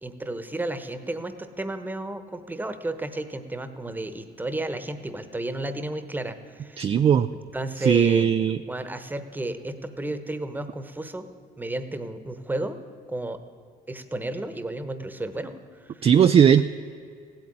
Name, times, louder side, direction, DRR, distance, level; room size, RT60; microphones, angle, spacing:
voice 1, 0.0-6.9 7.5-8.3 8.7-12.8 13.1-13.4 13.9-15.6 15.9-16.1, right 1 dB, 10° right, 10 dB, 1.1 m, -32 dB
voice 2, 6.8-7.3 7.8-8.6 16.0-16.6, right 8 dB, 35° right, 9 dB, 0.4 m, -18 dB
16.0 x 8.8 x 9.7 m, 2.3 s
cardioid pair, 110°, 17 cm